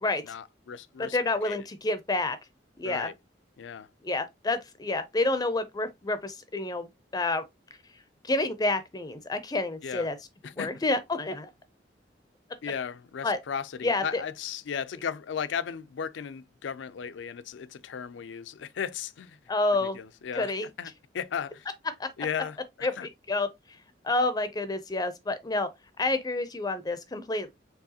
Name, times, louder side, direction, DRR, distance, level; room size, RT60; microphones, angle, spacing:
voice 1, 0.2-1.2 1.4-1.6 2.8-3.1 3.6-3.9 9.8-10.1 10.4-10.7 12.6-19.4 19.8-21.7 22.2-23.1, left 7 dB, 80° left, 0.4 m, -36 dB
voice 2, 1.0-2.4 2.8-3.1 4.0-7.4 8.2-10.1 10.6-11.5 13.2-13.4 13.8-14.2 19.5-20.0 20.4-20.7 22.0-22.1 22.8-23.5 24.0-25.7 26.0-27.5, left 2 dB, 20° left, 0.4 m, -29 dB
4.6 x 3.3 x 2.8 m
head